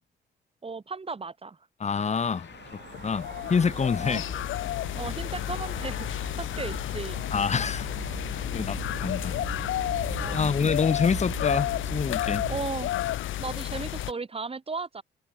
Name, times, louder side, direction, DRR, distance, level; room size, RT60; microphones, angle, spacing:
voice 1, 0.6-1.6 4.0-4.3 4.9-7.2 10.2-10.5 12.5-12.9 13.4-15.0, right 4 dB, 30° right, 5.1 m, -35 dB
voice 2, 1.8-4.2 7.3-7.9 8.5-9.4 10.3-12.4, left 5 dB, 35° left, 1.7 m, -27 dB
sound 1, 1.9-8.5, left 9 dB, 60° left, 6.4 m, -46 dB
sound 2, 2.3-12.6, right 9 dB, 60° right, 7.3 m, -41 dB
sound 3, 2.9-14.1, left 13 dB, 80° left, 1.5 m, -31 dB
cardioid pair, 90°, 20 cm